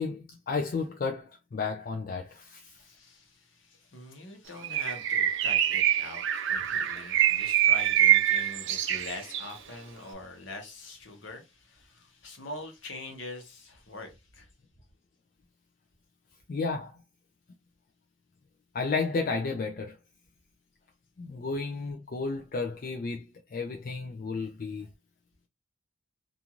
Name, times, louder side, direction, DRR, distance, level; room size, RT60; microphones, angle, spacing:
voice 1, 0.0-2.7 16.5-17.0 18.7-20.0 21.2-23.2 23.5-24.9, left 4 dB, 40° left, 0.3 m, -32 dB
voice 2, 2.6-14.5, left 2 dB, 60° left, 0.9 m, -44 dB
Bird, 4.6-9.6, right 11 dB, 60° right, 0.4 m, -25 dB
2.5 x 2.4 x 2.9 m
head